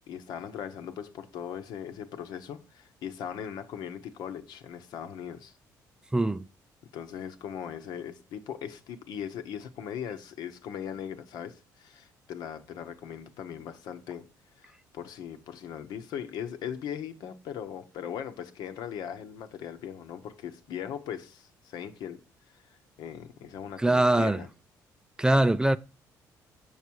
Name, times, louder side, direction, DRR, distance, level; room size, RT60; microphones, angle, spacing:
voice 1, 0.1-5.5 6.9-14.2 14.6-22.2 22.5-24.5, left 9 dB, 75° left, 1.1 m, -39 dB
voice 2, 6.1-6.5 23.8-24.4 25.2-25.8, right 1 dB, 10° right, 0.4 m, -22 dB
7.3 x 6.6 x 4.7 m
cardioid pair, 95°, 7 cm